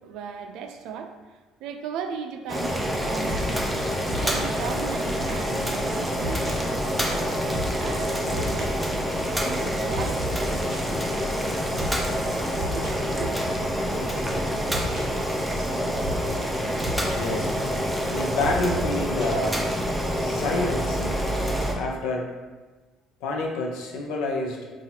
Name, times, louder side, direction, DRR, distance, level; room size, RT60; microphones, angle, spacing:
voice 1, 0.0-3.6 4.2-8.8 9.4-11.1 12.7-13.5, right 6 dB, 65° right, 5 dB, 0.4 m, -37 dB
Boiling, 2.5-21.7, equal, ahead, 0.4 m, -27 dB
sound 1, 3.3-20.0, right 1 dB, 25° right, 1.1 m, -35 dB
voice 2, 17.1-17.5 18.1-19.7 20.2-21.2 21.8-22.3 23.2-24.6, left 2 dB, 85° left, 1 dB, 0.6 m, -28 dB
5.7 x 2.4 x 2.8 m, 1.3 s
cardioid pair, 180°, 0 cm